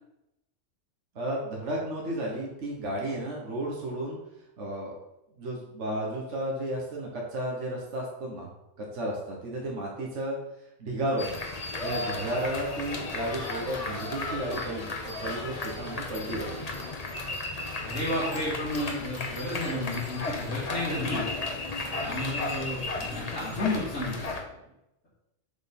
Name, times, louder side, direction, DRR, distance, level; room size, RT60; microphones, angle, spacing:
voice 1, 1.2-4.2 4.6-5.0 5.4-8.5 8.8-10.4 10.8-11.4 11.8-16.6, right 1 dB, 70° right, -3 dB, 1.7 m, -33 dB
sound 1, 11.2-24.4, left 3 dB, 35° left, 1.0 m, -34 dB
voice 2, 17.8-21.3 22.0-24.6, left 1 dB, 85° left, -11 dB, 2.7 m, -32 dB
7.3 x 4.5 x 5.4 m, 0.88 s
omnidirectional pair, 1.3 m